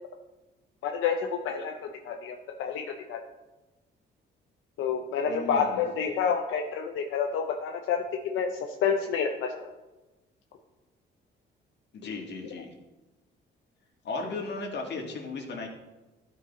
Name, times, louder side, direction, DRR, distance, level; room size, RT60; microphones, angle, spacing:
voice 1, 0.8-3.2 4.8-9.7 12.0-12.2, left 6 dB, 90° left, 2 dB, 0.7 m, -29 dB
voice 2, 5.3-5.8 11.9-12.7 14.0-15.7, left 3 dB, 60° left, 1 dB, 1.8 m, -36 dB
12.5 x 4.7 x 4.0 m, 1.1 s
cardioid pair, 90°, 20 cm